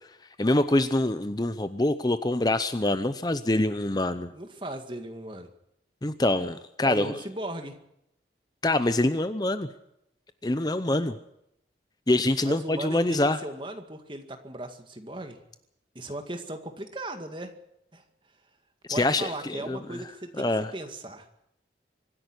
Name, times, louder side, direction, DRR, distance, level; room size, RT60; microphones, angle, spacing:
voice 1, 0.4-4.3 6.0-7.2 8.6-9.7 10.4-11.2 12.1-13.4 18.9-20.0 20.4-20.7, left 1 dB, 20° left, 11 dB, 0.7 m, -25 dB
voice 2, 4.3-5.5 6.8-7.8 12.4-15.4 16.0-17.5 17.9-18.0 18.9-21.3, right 1 dB, 25° right, 6 dB, 2.0 m, -37 dB
24.5 x 11.0 x 9.8 m, 0.80 s
head